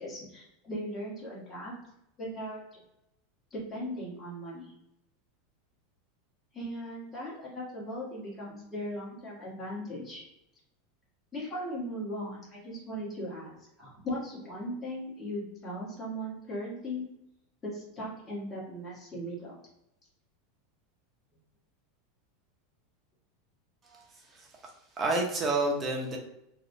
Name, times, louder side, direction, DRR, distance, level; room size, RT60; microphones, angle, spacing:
voice 1, 0.0-1.7 2.2-2.8 3.5-4.7 6.5-10.2 11.3-13.5 13.8-17.0 17.6-19.5, equal, 20° left, -6 dB, 1.1 m, -38 dB
voice 2, 23.8-24.5 25.0-26.2, right 2 dB, 20° right, 0 dB, 0.7 m, -30 dB
3.0 x 2.0 x 2.6 m, 0.83 s
supercardioid pair, 125°, 0 cm